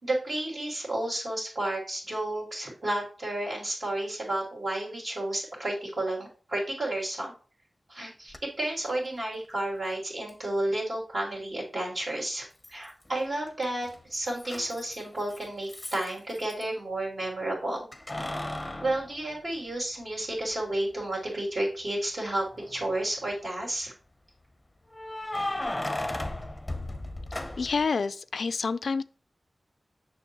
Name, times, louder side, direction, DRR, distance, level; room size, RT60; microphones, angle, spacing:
voice 1, 0.0-7.3 7.9-17.8 18.8-23.9, right 1 dB, 55° right, 2.7 m, -31 dB
Keys jangling, 8.3-8.4 10.3-10.4 12.6-13.2 13.5-16.7 17.9-20.0 20.5-20.6 22.4-23.0 24.9-27.9, left 1 dB, 15° left, 0.7 m, -36 dB
voice 2, 27.6-29.0, left 4 dB, 80° left, 0.3 m, -28 dB
7.0 x 6.0 x 2.9 m
wide cardioid pair, 95°, 0 cm